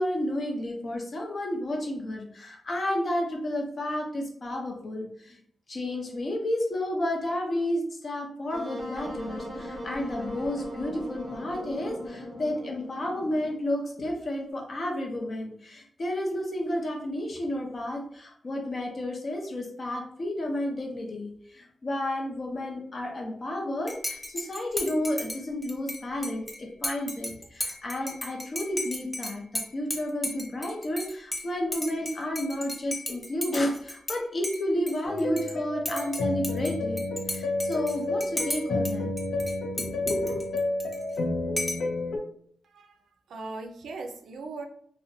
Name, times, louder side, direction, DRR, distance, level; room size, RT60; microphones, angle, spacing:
voice 1, 0.0-5.4 5.7-37.0 37.3-39.1 39.7-40.4, left 1 dB, 45° left, 0.7 m, -31 dB
Wind instrument woodwind instrument, 8.5-13.6, equal, 30° right, 0.8 m, -39 dB
Dishes pots and pans / Cutlery silverware / Chink clink, 23.9-34.2 34.4-35.5 35.8-38.9 39.2-41.2 41.6-41.9, left 1 dB, 10° left, 0.5 m, -35 dB
sound 1, 35.1-42.2, left 2 dB, 85° left, 0.4 m, -30 dB
voice 2, 42.6-44.7, right 3 dB, 90° right, 0.3 m, -39 dB
2.6 x 2.1 x 2.6 m
wide cardioid pair, 100°, 0 cm